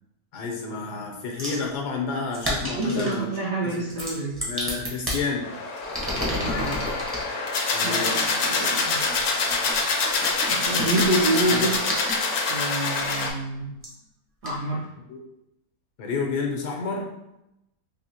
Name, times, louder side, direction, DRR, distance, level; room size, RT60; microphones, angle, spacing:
voice 1, 0.3-3.3 3.6-3.8 4.4-5.5 7.7-8.3 11.5-11.7 15.1-15.2 16.0-17.1, left 4 dB, 85° left, 0 dB, 1.3 m, -30 dB
sound 1, 1.4-1.6 2.3-3.2 3.9-5.2 5.8-7.2 8.1-12.4 13.2-13.3 13.8-13.9 14.4-14.5, equal, 10° right, 0.6 m, -32 dB
voice 2, 2.8-4.4 6.3-6.8 7.8-9.0 10.5-12.2 12.5-13.7 14.4-14.9, right 2 dB, 65° right, -3 dB, 0.7 m, -27 dB
sound 2, 5.4-13.3, left 4 dB, 70° left, 1.0 m, -25 dB
3.7 x 2.8 x 2.8 m, 0.87 s
omnidirectional pair, 1.7 m